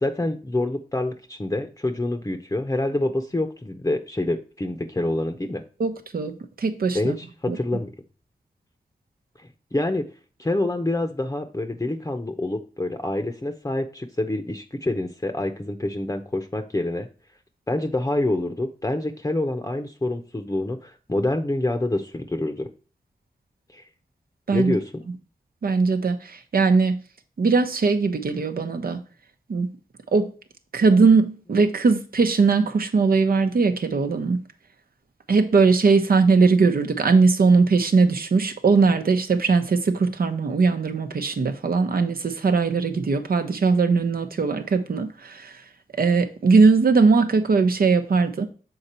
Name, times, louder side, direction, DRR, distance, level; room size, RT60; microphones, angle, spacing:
voice 1, 0.0-5.6 6.9-7.9 9.7-10.0 10.4-17.1 17.7-22.7 23.7-23.8 24.5-24.8, left 2 dB, 20° left, 0.7 m, -26 dB
voice 2, 5.8-6.3 6.6-7.2 7.5-7.6 24.5-24.7 25.6-27.0 27.4-29.0 29.5-29.7 30.1-30.3 30.7-34.4 35.3-45.5 46.0-48.5, right 4 dB, 70° right, 0.9 m, -20 dB
6.6 x 4.1 x 4.3 m
cardioid pair, 60°, 16 cm